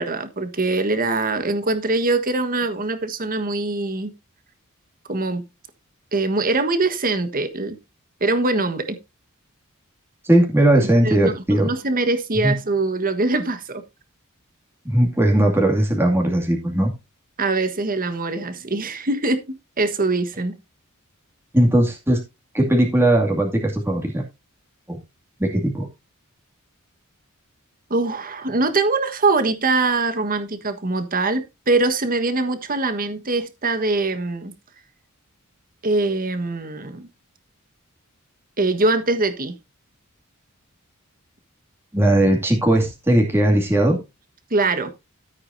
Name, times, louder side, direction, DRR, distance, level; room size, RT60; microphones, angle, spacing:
voice 1, 0.0-4.1 5.1-5.4 6.1-7.8 8.2-9.0 11.0-13.8 17.4-20.6 27.9-34.5 35.8-37.1 38.6-39.5 44.5-44.9, right 3 dB, 40° right, 1.4 m, -23 dB
voice 2, 10.2-11.7 12.4-12.5 14.8-16.9 21.5-22.2 22.5-24.2 24.9-25.0 25.4-25.9 41.9-44.0, right 1 dB, 10° right, 2.3 m, -18 dB
13.0 x 8.5 x 2.7 m
head